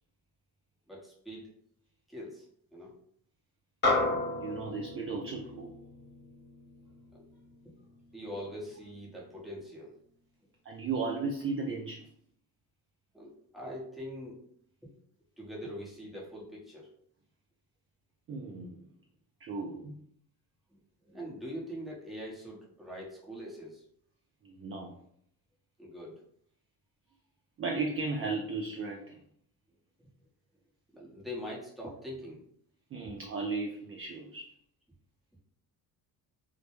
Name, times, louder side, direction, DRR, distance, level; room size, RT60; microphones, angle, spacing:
voice 1, 0.9-1.5 2.1-2.5 2.7-2.9 7.1-7.3 8.1-9.9 13.1-14.4 15.4-16.9 20.7-23.8 25.8-26.2 30.9-32.4, equal, ahead, -5 dB, 0.8 m, -43 dB
sound 1, 3.8-8.5, left 2 dB, 25° left, 1.1 m, -34 dB
voice 2, 4.4-5.7 10.6-12.1 18.3-18.8 19.4-20.0 24.4-24.9 27.6-29.2 32.9-34.5, right 4 dB, 30° right, 0 dB, 0.4 m, -35 dB
2.1 x 2.1 x 3.0 m, 0.66 s
cardioid pair, 85°, 43 cm